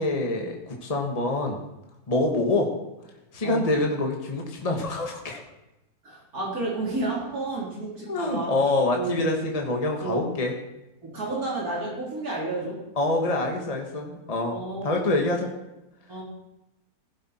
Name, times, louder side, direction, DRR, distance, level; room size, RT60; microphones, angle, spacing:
voice 1, 0.0-1.6 2.1-2.7 3.3-5.4 8.1-10.5 13.0-15.5, left 2 dB, 25° left, 2 dB, 1.5 m, -26 dB
voice 2, 6.0-8.6 8.9-9.4 10.0-10.2 11.0-12.8 14.5-14.9 16.1-16.2, right 2 dB, 75° right, -4 dB, 4.0 m, -31 dB
15.5 x 11.5 x 4.3 m, 0.94 s
omnidirectional pair, 1.6 m